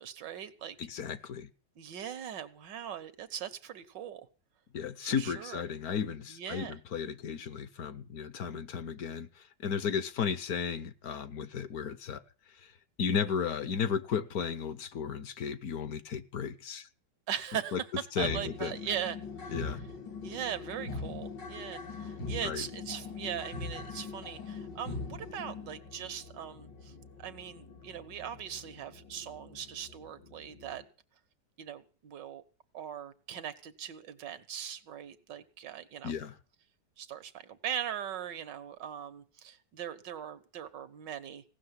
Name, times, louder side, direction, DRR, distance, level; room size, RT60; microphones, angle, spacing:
voice 1, 0.0-0.8 1.7-4.3 5.0-5.6 6.3-6.8 17.3-17.9 18.2-19.6 20.2-30.8 31.6-32.4 32.7-36.1 37.0-41.4, right 9 dB, 85° right, 1.8 m, -40 dB
voice 2, 0.8-1.5 4.7-12.2 12.5-12.7 13.0-16.9 17.7-17.8 18.1-18.7 19.5-19.8 22.4-22.6 36.0-36.3, left 7 dB, 60° left, 1.3 m, -34 dB
sound 1, 18.2-30.8, left 3 dB, 85° left, 2.6 m, -42 dB
17.0 x 6.5 x 9.7 m
omnidirectional pair, 1.9 m